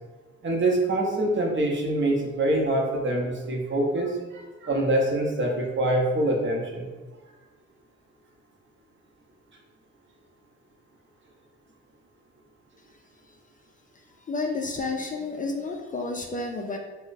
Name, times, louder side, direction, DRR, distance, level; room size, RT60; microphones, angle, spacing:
voice 1, 0.4-6.9, right 1 dB, 40° right, 0 dB, 0.8 m, -25 dB
voice 2, 14.3-16.8, left 3 dB, 25° left, 1 dB, 0.4 m, -30 dB
3.0 x 2.2 x 3.9 m, 1.3 s
cardioid pair, 90°, 30 cm